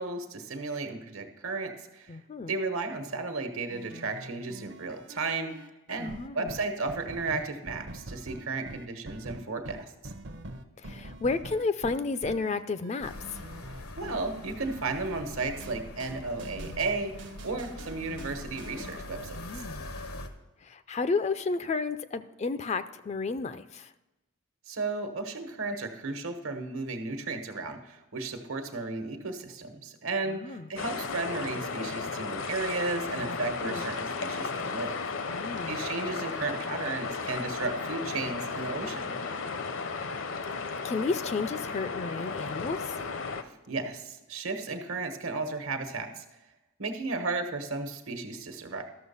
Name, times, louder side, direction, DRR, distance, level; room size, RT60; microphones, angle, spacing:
voice 1, 0.0-2.2 2.5-5.5 5.9-9.8 10.0-10.1 14.0-17.1 17.4-19.4 24.7-34.9 35.4-39.2 43.7-46.2 46.8-48.8, right 3 dB, 75° right, 6 dB, 1.2 m, -34 dB
voice 2, 2.1-2.5 6.0-6.5 10.8-13.4 19.3-19.9 20.6-23.9 30.3-30.7 33.2-33.4 33.6-33.9 35.3-35.8 40.5-43.0, left 4 dB, 30° left, 12 dB, 0.3 m, -32 dB
sound 1, 3.7-19.0, right 1 dB, 55° right, 0.7 m, -45 dB
sound 2, 13.0-20.3, left 1 dB, 85° left, 1.0 m, -42 dB
sound 3, 30.8-43.4, left 4 dB, 65° left, 0.7 m, -34 dB
13.0 x 6.6 x 5.5 m, 1.0 s
head